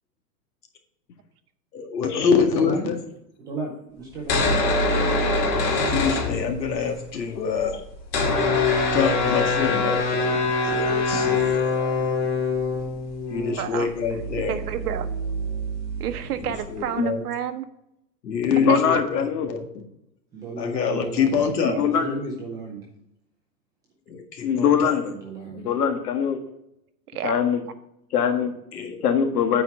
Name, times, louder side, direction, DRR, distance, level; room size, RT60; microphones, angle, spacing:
voice 1, 1.7-3.0 5.9-7.8 8.9-10.3 10.6-12.0 13.3-14.6 16.4-17.2 18.2-19.6 20.6-21.7 22.0-22.1 24.1-24.9 28.7-29.0, left 6 dB, 85° left, 3 dB, 2.1 m, -25 dB
voice 2, 2.6-2.9 3.4-4.6 20.3-21.4 21.9-22.9 25.2-25.6, right 3 dB, 5° right, -3 dB, 0.6 m, -34 dB
sound 1, 4.1-6.9 7.1-7.2 7.4-16.8, left 3 dB, 30° left, 2.3 m, -24 dB
voice 3, 13.6-13.9 14.5-15.1 16.0-17.6 18.6-19.0 21.7-21.8 27.1-27.4, right 10 dB, 65° right, 10 dB, 1.0 m, -30 dB
voice 4, 18.5-19.5 21.6-22.2 24.4-25.1 25.5-26.4 27.2-27.6 28.1-28.5 29.0-29.6, left 7 dB, 65° left, 6 dB, 1.6 m, -22 dB
9.0 x 4.5 x 5.8 m, 0.81 s
hypercardioid pair, 165°, 49 cm